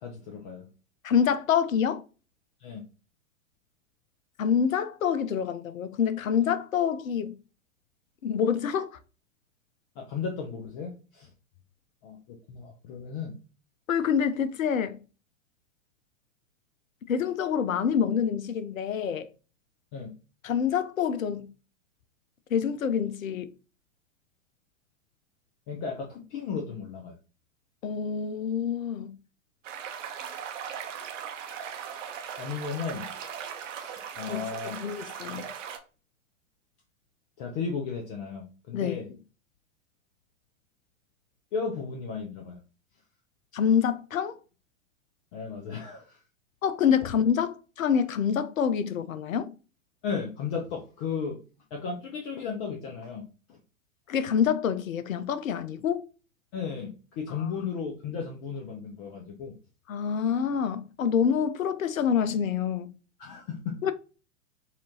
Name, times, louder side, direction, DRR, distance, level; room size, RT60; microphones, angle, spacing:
voice 1, 0.0-0.7 2.6-2.8 10.0-11.3 12.0-13.4 19.9-20.1 25.7-27.1 32.4-33.1 33.7-34.8 37.4-39.1 41.5-42.6 45.3-46.2 50.0-51.4 51.7-53.6 56.5-59.5 63.2-63.8, left 5 dB, 35° left, 0.7 m, -35 dB
voice 2, 1.0-2.0 4.4-7.4 8.2-9.0 13.9-15.0 17.1-19.3 20.4-21.5 22.5-23.5 27.8-29.1 34.3-35.5 38.7-39.0 43.5-44.4 46.6-49.5 54.1-56.1 57.6-57.7 59.9-62.9 63.8-63.9, left 7 dB, 75° left, 0.6 m, -26 dB
sound 1, 29.6-35.8, right 8 dB, 60° right, 0.9 m, -39 dB
4.3 x 2.5 x 2.7 m
figure-of-eight pair, 100°, 41 cm